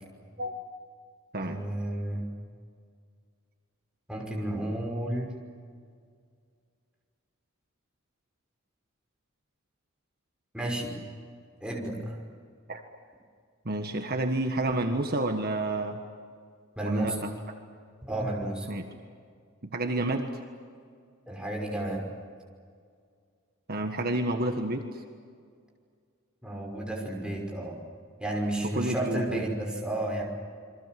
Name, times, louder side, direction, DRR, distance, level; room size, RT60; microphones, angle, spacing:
voice 1, 1.4-2.3 4.1-5.4 10.5-11.0 11.6-12.1 16.8-17.2 18.1-18.7 21.3-22.0 26.4-27.8 28.2-30.2, right 1 dB, 5° right, -1 dB, 5.8 m, -32 dB
voice 2, 13.6-16.0 16.8-17.3 18.7-18.8 19.7-20.3 23.7-25.0 28.6-29.4, right 2 dB, 45° right, 4 dB, 1.6 m, -29 dB
29.0 x 23.5 x 7.8 m, 2.2 s
head